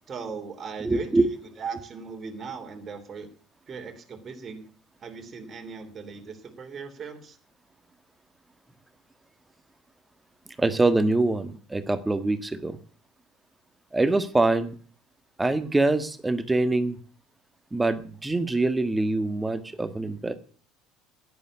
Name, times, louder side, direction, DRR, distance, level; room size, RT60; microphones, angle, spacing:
voice 1, 0.1-1.1 1.6-3.3 3.7-4.6 5.0-7.4, right 5 dB, 30° right, 4 dB, 3.0 m, -38 dB
voice 2, 0.8-1.3 10.6-12.8 13.9-14.7 15.4-17.0 17.7-20.3, right 2 dB, 10° right, 12 dB, 1.6 m, -24 dB
11.0 x 10.5 x 8.3 m, 0.42 s
figure-of-eight pair, 65°, 0 cm